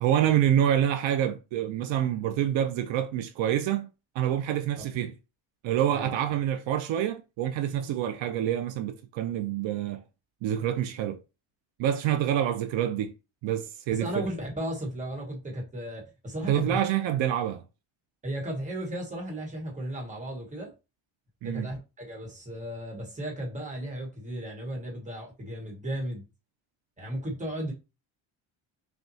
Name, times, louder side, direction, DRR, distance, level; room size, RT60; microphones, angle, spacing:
voice 1, 0.0-3.9 4.2-5.1 5.6-10.0 10.4-11.2 11.8-13.1 13.4-14.2 16.4-17.6 21.4-21.7, right 10 dB, 75° right, 0.5 m, -27 dB
voice 2, 13.9-16.8 18.2-20.7 21.4-26.2 27.0-27.7, right 1 dB, 15° right, 1.2 m, -35 dB
5.7 x 2.3 x 2.7 m
cardioid pair, 145°, 46 cm